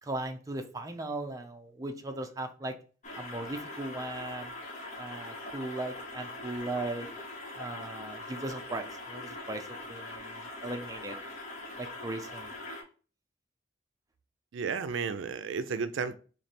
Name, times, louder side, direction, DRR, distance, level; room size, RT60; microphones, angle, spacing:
voice 1, 0.0-2.7 3.2-4.5 5.0-7.1 7.5-11.1 11.8-12.5, right 2 dB, 20° right, 0.5 m, -38 dB
sound 1, 3.0-12.8, left 2 dB, 40° left, 1.0 m, -42 dB
voice 2, 14.5-16.1, right 5 dB, 80° right, 0.4 m, -33 dB
3.2 x 3.2 x 4.2 m
head